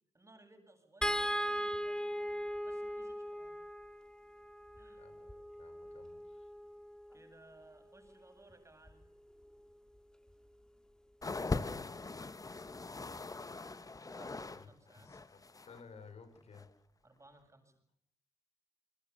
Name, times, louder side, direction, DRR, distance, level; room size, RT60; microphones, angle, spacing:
voice 1, 0.1-3.6 4.8-5.0 7.1-9.0 14.1-15.1 17.0-17.8, right 2 dB, 25° right, 6 dB, 7.9 m, -61 dB
sound 1, 1.0-7.3 8.9-9.0 9.4-9.5, equal, 5° left, 1.8 m, -39 dB
voice 2, 4.9-6.5 14.6-16.7, left 5 dB, 60° left, 10 dB, 5.4 m, -57 dB
sound 2, 11.2-14.7 14.9-15.8 16.5-16.7, left 3 dB, 30° left, 1.4 m, -40 dB
28.5 x 21.0 x 7.1 m, 0.69 s
cardioid pair, 60°, 12 cm